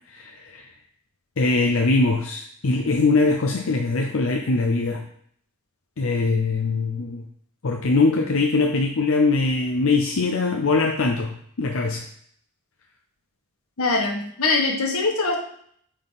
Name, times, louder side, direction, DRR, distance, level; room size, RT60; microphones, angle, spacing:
voice 1, 0.1-0.7 1.4-5.0 6.0-7.3 7.6-12.1, left 3 dB, 65° left, 2 dB, 0.6 m, -22 dB
voice 2, 13.8-15.4, left 3 dB, 90° left, 2 dB, 1.5 m, -22 dB
8.8 x 3.9 x 4.1 m, 0.63 s
head